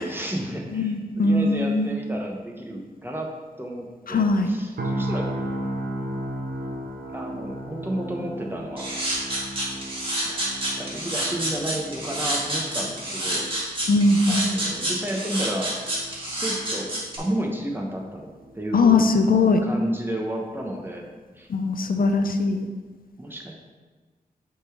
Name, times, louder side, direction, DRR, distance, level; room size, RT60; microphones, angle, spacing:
voice 1, 0.0-3.3 3.6-5.3 7.1-8.9 10.2-13.5 14.3-15.7 16.3-16.9 17.2-19.1 19.6-21.1 21.4-21.5 23.2-23.5, right 1 dB, 15° right, 0 dB, 1.0 m, -32 dB
voice 2, 0.7-1.9 4.1-4.5 13.9-14.5 18.7-19.6 21.5-22.7, left 3 dB, 65° left, 6 dB, 0.5 m, -20 dB
sound 1, 4.8-18.8 19.1-19.3, right 1 dB, 80° right, 0.8 m, -36 dB
sound 2, 8.8-17.2, right 1 dB, 35° right, 1.8 m, -28 dB
6.6 x 3.8 x 4.4 m, 1.3 s
wide cardioid pair, 80°, 16 cm